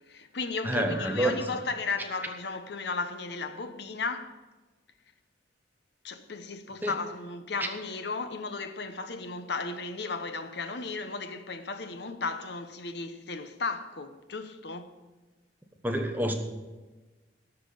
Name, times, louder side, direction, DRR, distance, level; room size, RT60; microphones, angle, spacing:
voice 1, 0.1-4.3 6.0-14.9 16.1-16.3, left 4 dB, 60° left, 0.9 m, -35 dB
voice 2, 0.6-1.4 6.8-6.9 15.8-16.3, right 1 dB, 10° right, 1.1 m, -27 dB
12.5 x 5.9 x 8.5 m
head